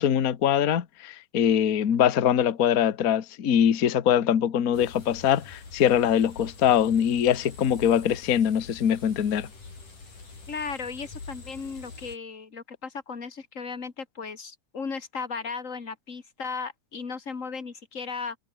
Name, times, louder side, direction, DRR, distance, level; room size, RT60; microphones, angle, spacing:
voice 1, 0.0-9.5, left 9 dB, 55° left, 1.0 m, -23 dB
sound 1, 4.7-12.2, left 3 dB, 80° left, 9.6 m, -45 dB
voice 2, 10.5-18.4, left 5 dB, 30° left, 1.8 m, -36 dB
omnidirectional pair, 3.7 m